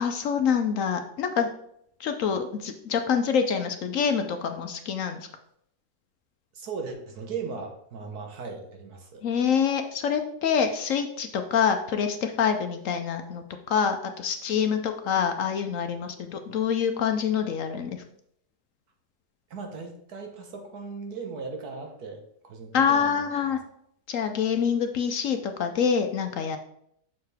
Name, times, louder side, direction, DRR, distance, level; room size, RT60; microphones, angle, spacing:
voice 1, 0.0-1.5 2.0-5.3 9.2-18.0 22.7-23.6 24.1-26.6, left 7 dB, 65° left, 6 dB, 0.9 m, -26 dB
voice 2, 6.5-9.2 19.5-23.2, right 5 dB, 70° right, 3 dB, 1.7 m, -38 dB
6.8 x 6.6 x 3.4 m, 0.72 s
omnidirectional pair, 1.7 m